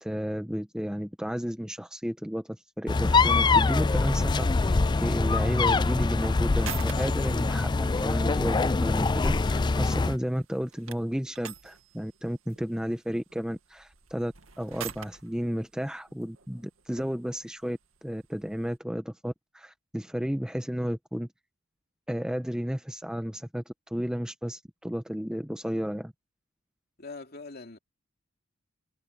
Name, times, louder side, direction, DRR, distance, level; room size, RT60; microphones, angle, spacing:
voice 1, 0.0-21.3 22.1-26.1, equal, 5° right, 0.9 m, -33 dB
sound 1, 2.9-10.2, left 3 dB, 20° left, 0.4 m, -24 dB
sound 2, 3.3-18.8, right 9 dB, 85° right, 2.1 m, -48 dB
voice 2, 27.0-27.8, left 3 dB, 50° left, 2.8 m, -42 dB
head